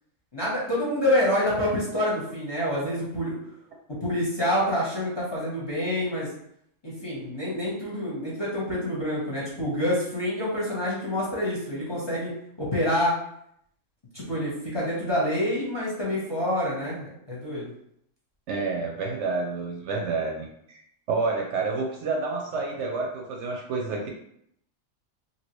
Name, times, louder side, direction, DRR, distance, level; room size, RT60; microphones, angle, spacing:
voice 1, 0.3-3.4 3.9-6.3 6.8-12.3 12.6-13.1 14.1-17.7, left 1 dB, 25° left, -6 dB, 0.8 m, -27 dB
voice 2, 18.5-20.8 21.1-24.1, right 3 dB, 70° right, 0 dB, 0.8 m, -29 dB
2.9 x 2.7 x 3.0 m, 0.72 s
omnidirectional pair, 1.4 m